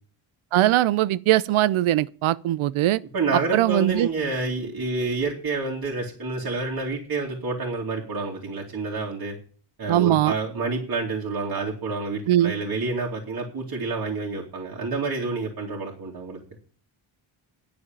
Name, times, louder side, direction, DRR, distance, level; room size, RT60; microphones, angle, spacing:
voice 1, 0.5-3.0 3.5-4.1 9.9-10.3 12.3-12.5, right 14 dB, 90° right, 0.7 m, -20 dB
voice 2, 3.1-9.4 9.8-16.4, right 3 dB, 45° right, 2.8 m, -28 dB
10.0 x 7.1 x 9.0 m
wide cardioid pair, 120°, 47 cm